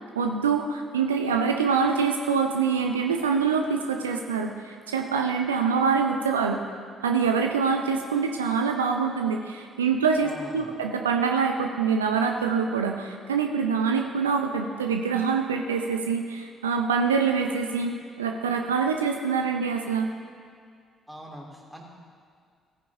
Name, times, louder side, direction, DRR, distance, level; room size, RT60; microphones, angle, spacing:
voice 1, 0.2-6.6 7.0-20.1, right 5 dB, 80° right, 3 dB, 0.5 m, -25 dB
voice 2, 10.2-10.8 21.1-21.9, equal, 5° right, -2 dB, 2.5 m, -42 dB
16.5 x 9.7 x 2.8 m, 2.1 s
figure-of-eight pair, 45°, 0 cm